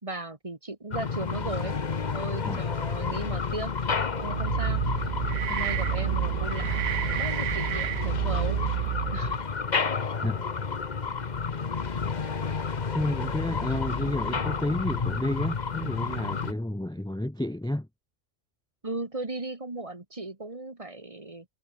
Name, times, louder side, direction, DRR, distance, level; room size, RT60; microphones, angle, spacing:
voice 1, 0.0-1.8 2.1-4.8 5.5-8.6 9.1-9.4 18.8-21.5, right 2 dB, 25° right, 1.9 m, -37 dB
sound 1, 0.9-16.5, left 5 dB, 40° left, 1.1 m, -31 dB
sound 2, 4.1-9.4, right 12 dB, 75° right, 1.0 m, -29 dB
voice 2, 12.9-17.9, left 1 dB, 5° left, 0.6 m, -30 dB
omnidirectional pair, 1.3 m